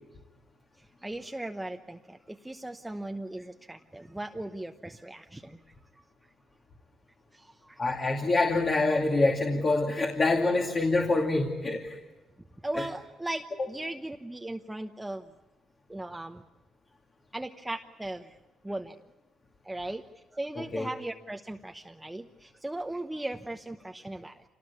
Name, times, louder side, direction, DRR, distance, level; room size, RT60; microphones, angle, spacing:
voice 1, 1.0-5.6 7.3-7.8 12.6-15.3 15.9-16.4 17.3-18.3 18.6-19.0 19.6-20.0 20.3-24.4, right 1 dB, 10° right, 5 dB, 1.0 m, -38 dB
voice 2, 7.8-12.0 12.7-12.9 20.6-20.9, left 2 dB, 40° left, 2 dB, 2.5 m, -26 dB
26.5 x 19.0 x 8.5 m, 1.1 s
cardioid pair, 90°, 0 cm